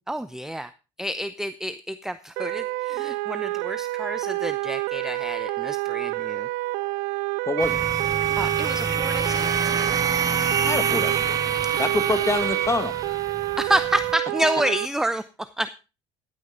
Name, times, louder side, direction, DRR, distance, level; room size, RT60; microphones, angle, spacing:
voice 1, 0.1-0.7 1.0-6.5 8.2-9.5 13.6-15.7, right 1 dB, 5° right, 13 dB, 0.6 m, -28 dB
sound 1, 2.4-14.9, right 20 dB, 75° right, 0.6 m, -28 dB
voice 2, 7.5-7.8 10.6-11.4 11.8-12.9, left 3 dB, 20° left, 9 dB, 2.0 m, -26 dB
sound 2, 7.6-14.1, right 4 dB, 25° right, 1.6 m, -29 dB
sound 3, 7.6-12.7, right 12 dB, 55° right, 1.8 m, -28 dB
15.0 x 9.5 x 3.9 m, 0.31 s
hypercardioid pair, 65°, 15 cm